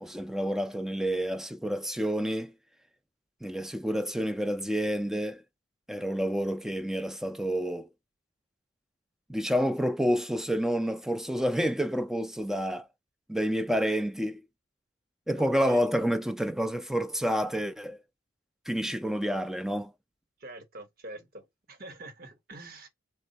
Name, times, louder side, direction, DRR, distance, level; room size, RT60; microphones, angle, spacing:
voice 1, 0.0-2.5 3.4-5.4 5.9-7.9 9.3-12.9 13.3-14.4 15.3-18.0 18.7-19.9, equal, ahead, 0.4 m, -29 dB
voice 2, 15.4-15.9 20.4-22.9, right 2 dB, 55° right, 1.0 m, -46 dB
3.6 x 2.1 x 4.1 m
head